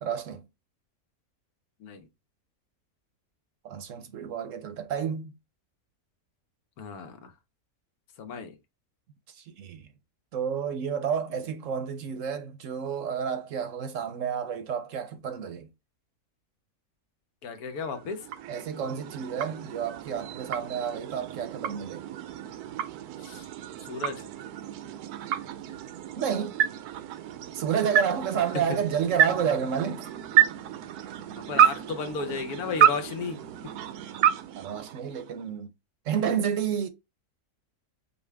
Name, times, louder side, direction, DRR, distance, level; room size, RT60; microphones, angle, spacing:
voice 1, 0.0-0.4 3.6-5.3 9.6-9.8 10.3-15.7 18.5-22.0 26.2-26.6 27.5-30.1 31.5-31.7 34.6-35.7 36.1-36.9, right 7 dB, 65° right, 0.9 m, -30 dB
voice 2, 6.8-7.3 8.2-8.6 11.3-11.4 17.4-18.3 23.2-23.5 23.9-24.3 28.7-28.8 31.4-33.4, left 4 dB, 80° left, 1.3 m, -34 dB
sound 1, 17.7-35.5, right 9 dB, 90° right, 1.1 m, -29 dB
5.4 x 2.4 x 3.3 m
omnidirectional pair, 1.6 m